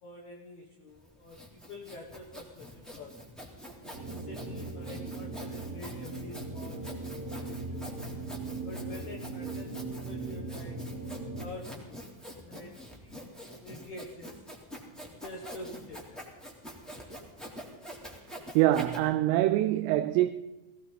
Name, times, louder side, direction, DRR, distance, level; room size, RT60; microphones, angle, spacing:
voice 1, 0.0-3.3 4.1-8.0 8.6-10.8 11.4-13.2 13.5-14.4 15.1-16.2, left 2 dB, 80° left, 1.6 m, -47 dB
Sawing, 0.9-19.0, equal, ahead, 1.9 m, -46 dB
sound 1, 3.9-11.5, right 3 dB, 20° right, 3.1 m, -39 dB
voice 2, 18.6-20.3, right 14 dB, 85° right, 3.3 m, -24 dB
18.0 x 18.0 x 4.1 m
omnidirectional pair, 5.8 m